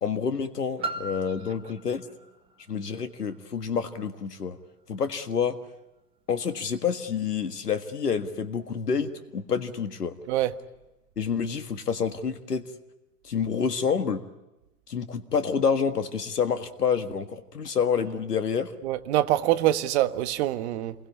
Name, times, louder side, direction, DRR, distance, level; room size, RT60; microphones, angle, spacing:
voice 1, 0.0-2.0 2.7-4.6 4.9-5.6 6.3-10.2 11.2-12.6 13.2-14.2 14.9-18.7, left 6 dB, 80° left, 1.8 m, -28 dB
Piano, 0.8-6.3 7.0-7.1, right 2 dB, 10° right, 1.6 m, -41 dB
voice 2, 18.8-20.9, right 14 dB, 45° right, 1.5 m, -24 dB
28.5 x 21.5 x 8.4 m
figure-of-eight pair, 110°, 46 cm